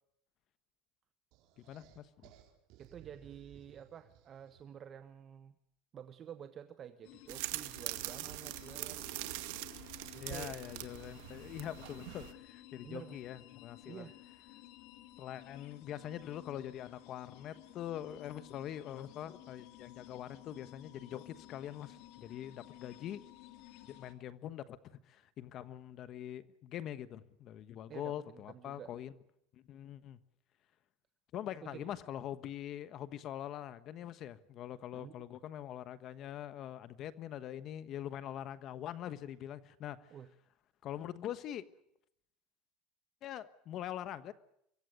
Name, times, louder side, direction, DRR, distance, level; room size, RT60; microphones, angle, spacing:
sound 1, 1.3-4.9, right 12 dB, 60° right, 4.8 m, -60 dB
voice 1, 1.6-2.3 10.2-14.1 15.2-23.2 23.8-29.1 29.5-30.2 31.3-40.1 40.8-41.7 43.2-44.3, left 11 dB, 40° left, 13 dB, 1.2 m, -44 dB
voice 2, 2.8-5.5 5.9-9.4 10.1-10.5 11.3-11.4 12.8-13.2 13.8-14.2 27.9-28.1 28.5-28.9 31.6-31.8 34.9-35.3 40.1-40.3, right 9 dB, 30° right, 9 dB, 1.2 m, -50 dB
sound 2, 7.0-24.1, left 15 dB, 60° left, 3.0 m, -55 dB
sound 3, 7.3-12.3, right 18 dB, 75° right, 2.1 m, -43 dB
25.0 x 23.0 x 6.6 m, 0.75 s
cardioid pair, 155°, 0 cm